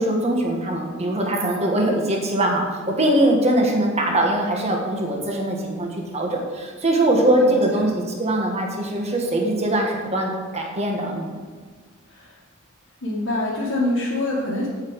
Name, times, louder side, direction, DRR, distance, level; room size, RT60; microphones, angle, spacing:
voice 1, 0.0-7.9 8.2-11.4, right 1 dB, 30° right, 0 dB, 1.6 m, -22 dB
voice 2, 7.4-7.9 12.1-12.4 13.0-14.7, left 1 dB, 75° left, -8 dB, 2.3 m, -25 dB
8.5 x 8.4 x 4.8 m, 1.5 s
head